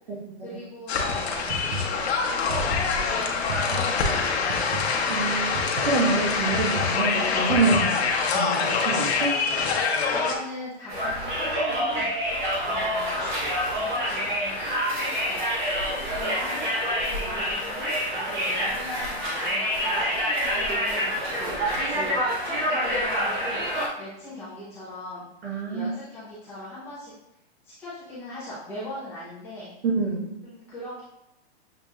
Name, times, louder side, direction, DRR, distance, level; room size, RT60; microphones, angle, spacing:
voice 1, 0.4-4.8 10.1-12.1 12.7-13.2 13.7-15.4 15.7-25.3 25.7-27.1 27.6-29.7 30.4-31.0, left 1 dB, 5° left, -10 dB, 0.6 m, -40 dB
sound 1, 0.9-10.3, left 5 dB, 85° left, 0.9 m, -25 dB
sound 2, 1.5-8.2, equal, 35° right, 0.5 m, -35 dB
voice 2, 5.1-5.5 5.8-8.0 8.3-9.3 25.4-25.9 29.8-30.3, right 3 dB, 70° right, -2 dB, 1.4 m, -26 dB
Conversation, 10.9-23.9, equal, 50° right, 1.5 m, -27 dB
6.7 x 2.9 x 2.3 m, 0.90 s
hypercardioid pair, 175°, 31 cm